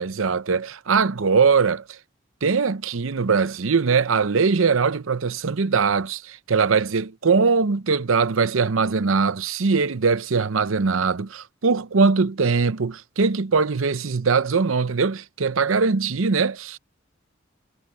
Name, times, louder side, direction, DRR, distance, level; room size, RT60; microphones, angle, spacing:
voice 1, 0.0-1.8 2.4-16.8, right 5 dB, 75° right, 0.7 m, -21 dB
head